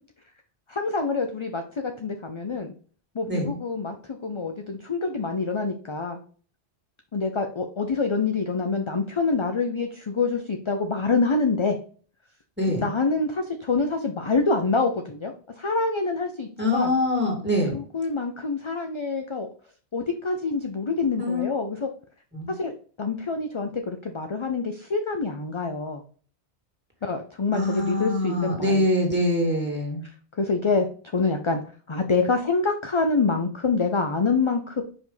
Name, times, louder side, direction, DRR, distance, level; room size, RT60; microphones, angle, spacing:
voice 1, 0.7-2.7 3.1-6.2 7.1-11.8 12.7-16.9 17.7-19.5 19.9-21.9 22.5-26.0 27.0-28.8 30.4-30.9 31.1-31.6 31.9-34.8, left 4 dB, 35° left, 5 dB, 0.5 m, -26 dB
voice 2, 12.6-12.9 16.6-17.7 21.2-21.4 22.3-22.5 27.5-30.0, left 1 dB, 10° right, -1 dB, 2.1 m, -24 dB
5.4 x 5.0 x 3.9 m, 0.42 s
omnidirectional pair, 1.1 m